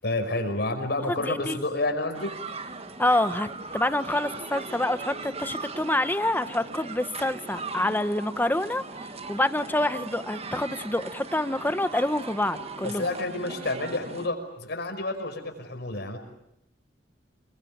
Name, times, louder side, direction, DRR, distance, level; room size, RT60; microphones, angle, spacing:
voice 1, 0.0-2.3 12.8-16.2, left 2 dB, 60° left, 6 dB, 5.7 m, -29 dB
voice 2, 1.1-1.6 3.0-8.8 9.3-13.0, left 1 dB, 10° left, 11 dB, 1.1 m, -27 dB
sound 1, 2.1-14.3, right 3 dB, 35° right, 1.6 m, -39 dB
29.0 x 23.5 x 8.8 m, 0.81 s
head